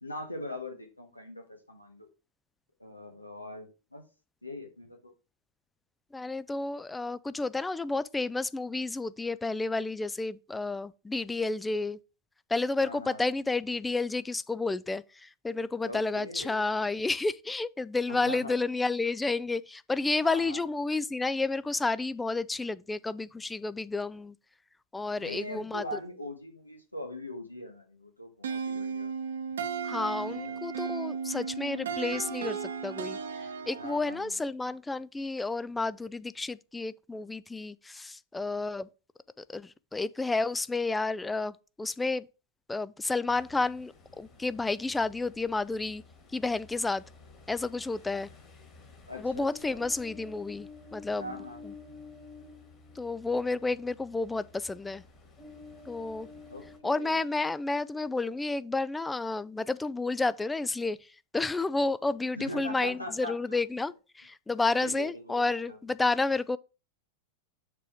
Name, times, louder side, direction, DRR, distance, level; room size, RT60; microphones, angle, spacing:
voice 1, 0.0-2.1 2.8-4.0 4.4-5.1 12.8-13.3 15.9-16.6 18.1-18.5 20.2-20.6 25.2-29.1 30.1-30.6 33.8-34.4 49.1-49.8 51.2-51.8 56.5-57.2 62.4-63.6 64.8-65.8, left 1 dB, 85° left, 1.3 m, -41 dB
voice 2, 6.1-12.0 12.5-24.3 24.9-26.0 29.8-33.2 33.7-38.9 39.4-42.3 42.7-46.0 46.3-47.0 47.5-48.3 49.1-51.4 51.6-51.7 53.0-55.0 55.9-56.3 56.8-61.0 61.3-66.6, left 3 dB, 10° left, 0.3 m, -31 dB
sound 1, 28.4-34.2, right 6 dB, 65° right, 0.8 m, -35 dB
Ocean, 43.3-56.8, left 4 dB, 25° left, 2.3 m, -51 dB
6.7 x 3.7 x 4.8 m
figure-of-eight pair, 90°, 0 cm